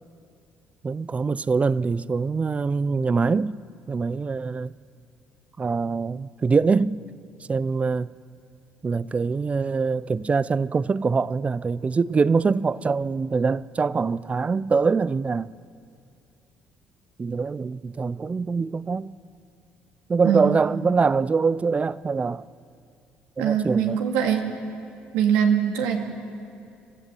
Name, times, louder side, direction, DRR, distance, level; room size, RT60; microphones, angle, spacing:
voice 1, 0.8-3.6 3.9-4.7 5.6-7.0 7.5-8.1 8.8-15.5 17.2-19.1 20.1-22.4 23.4-24.0, right 4 dB, 30° right, 0.6 m, -24 dB
voice 2, 23.4-24.4 25.1-26.0, right 8 dB, 85° right, 2.2 m, -22 dB
26.5 x 15.0 x 7.7 m
hypercardioid pair, 60°, 4 cm